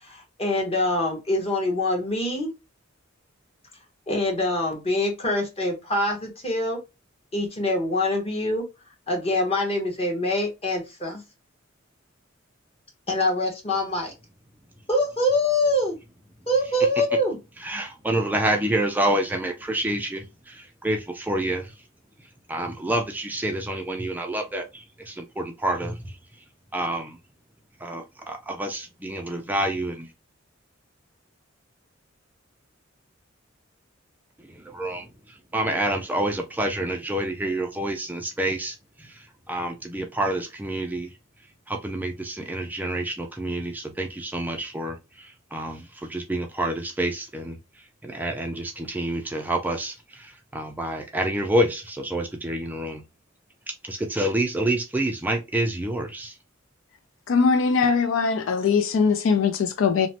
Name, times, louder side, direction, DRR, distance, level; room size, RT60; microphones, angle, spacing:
voice 1, 0.0-2.5 4.1-6.8 7.3-8.7 9.1-11.2 13.1-14.1 14.9-16.0 16.5-17.4, left 1 dB, 30° left, 1.0 m, -24 dB
voice 2, 17.6-21.7 22.5-26.1 26.7-27.2 27.8-30.1 34.6-35.1 35.5-39.2 39.5-41.1 41.7-47.6 48.0-53.0 53.8-56.3, right 1 dB, 10° right, 0.3 m, -28 dB
voice 3, 57.3-60.1, left 5 dB, 70° left, 0.4 m, -21 dB
3.0 x 2.1 x 2.7 m
head